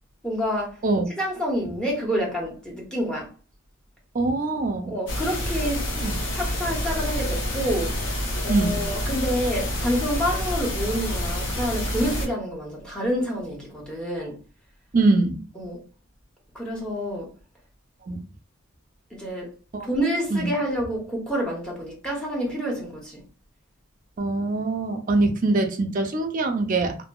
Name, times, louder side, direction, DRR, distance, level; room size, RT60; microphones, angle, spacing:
voice 1, 0.2-0.8 1.2-3.3 4.9-8.1 8.4-14.4 15.6-15.8 16.5-17.3 19.1-19.5 19.8-23.2, equal, 5° left, 0.8 m, -28 dB
voice 2, 4.1-5.0 6.0-6.2 8.5-8.8 14.9-15.4 18.1-18.2 19.7-19.9 20.3-20.5 24.2-27.0, right 2 dB, 40° right, 0.5 m, -23 dB
sound 1, 5.1-12.3, equal, 60° left, 0.8 m, -28 dB
2.7 x 2.6 x 2.2 m
head